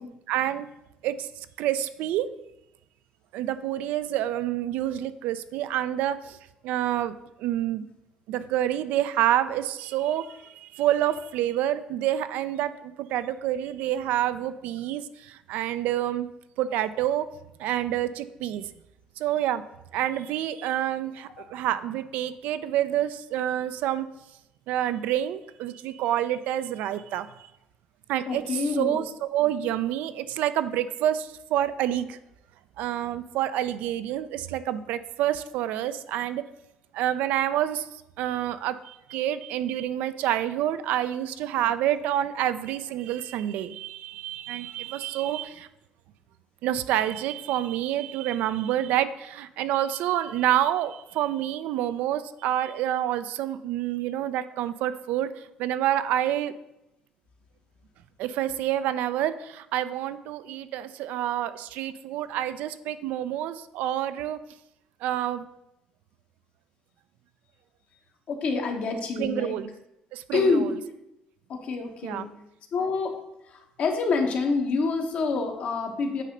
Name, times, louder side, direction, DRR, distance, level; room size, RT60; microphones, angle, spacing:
voice 1, 0.3-0.7 1.0-1.3 1.6-2.3 3.3-6.4 6.6-7.9 8.3-16.3 16.6-17.3 17.6-18.7 19.2-19.6 19.9-24.1 24.7-27.3 28.1-32.2 32.8-36.4 36.9-45.7 46.6-56.5 58.2-64.4 65.0-65.5 69.2-69.7 70.1-70.7 72.0-72.3, right 12 dB, 75° right, 13 dB, 0.4 m, -28 dB
voice 2, 28.3-29.0 68.3-69.6 70.3-70.7 71.5-72.3 72.7-73.1 73.5-76.2, left 4 dB, 55° left, 4 dB, 1.1 m, -27 dB
8.2 x 2.8 x 5.2 m, 0.87 s
cardioid pair, 100°, 3 cm